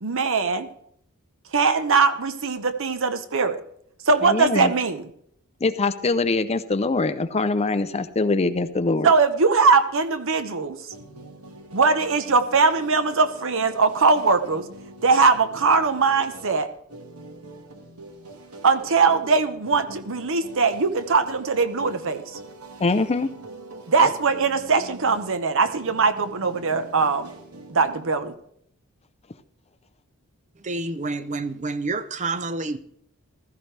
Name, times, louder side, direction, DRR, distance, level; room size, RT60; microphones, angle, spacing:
voice 1, 0.0-0.7 1.5-3.6 4.1-5.0 9.0-10.8 11.7-14.6 15.0-16.7 18.6-22.2 23.9-27.3 27.7-28.3, right 4 dB, 65° right, 1.0 m, -21 dB
voice 2, 4.2-4.7 5.6-9.1 22.8-23.3, left 3 dB, 30° left, 0.6 m, -23 dB
sound 1, 10.9-28.3, right 2 dB, 85° right, 1.7 m, -43 dB
voice 3, 30.6-32.8, right 3 dB, 35° right, 0.7 m, -28 dB
15.5 x 14.0 x 3.3 m
head